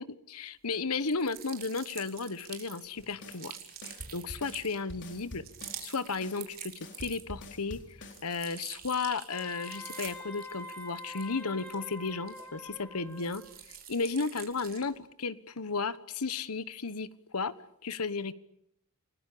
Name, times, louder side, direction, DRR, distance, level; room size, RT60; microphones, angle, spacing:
voice 1, 0.0-3.6 3.8-5.4 5.8-13.4 13.7-17.5 17.8-18.3, left 4 dB, 80° left, 14 dB, 1.3 m, -34 dB
sound 1, 1.0-7.5 7.8-12.7 13.1-15.0, right 10 dB, 45° right, 4.4 m, -47 dB
sound 2, 3.0-8.4, left 1 dB, 55° left, 4.0 m, -47 dB
Wind instrument woodwind instrument, 9.3-13.5, left 2 dB, 10° left, 5.1 m, -45 dB
29.5 x 20.5 x 8.6 m, 0.76 s
head